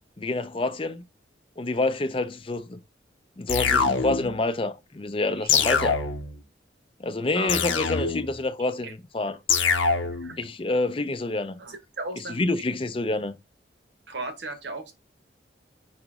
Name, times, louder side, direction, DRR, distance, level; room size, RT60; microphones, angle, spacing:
voice 1, 0.2-1.0 1.6-2.8 3.4-6.0 7.0-9.4 10.4-11.6 12.2-13.3, left 2 dB, 30° left, 0.5 m, -27 dB
sound 1, 3.5-4.4 5.5-6.4 7.5-8.4 9.5-10.4, left 5 dB, 85° left, 0.7 m, -24 dB
voice 2, 11.6-12.4 14.1-14.9, right 2 dB, 65° right, 1.1 m, -35 dB
5.1 x 2.9 x 3.5 m
head